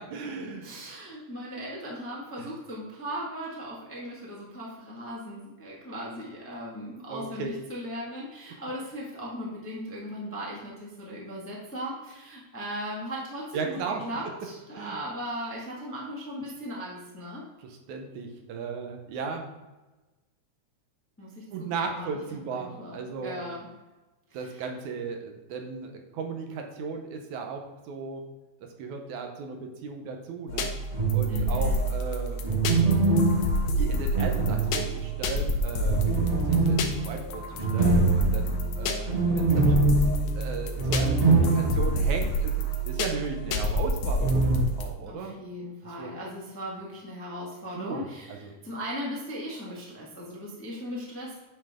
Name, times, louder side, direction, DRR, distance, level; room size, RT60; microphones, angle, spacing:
voice 1, 0.1-0.7 2.4-2.5 7.1-7.5 13.5-14.0 14.7-15.0 17.6-19.5 21.5-23.4 24.3-28.2 28.6-30.7 31.1-32.4 33.8-39.7 40.3-42.6 42.9-45.4 45.8-46.1 47.8-48.5, right 5 dB, 75° right, 3 dB, 2.3 m, -36 dB
voice 2, 0.6-17.5 21.2-23.7 24.3-24.5 31.3-31.8 45.1-51.4, equal, 10° left, -5 dB, 0.8 m, -38 dB
sound 1, 30.5-44.9, equal, 90° left, 2.3 m, -29 dB
sound 2, 30.9-31.7 32.4-35.2 35.8-42.1 42.3-42.4 44.2-44.6, right 3 dB, 30° right, 0.6 m, -24 dB
8.9 x 5.5 x 3.6 m, 1.1 s
omnidirectional pair, 3.5 m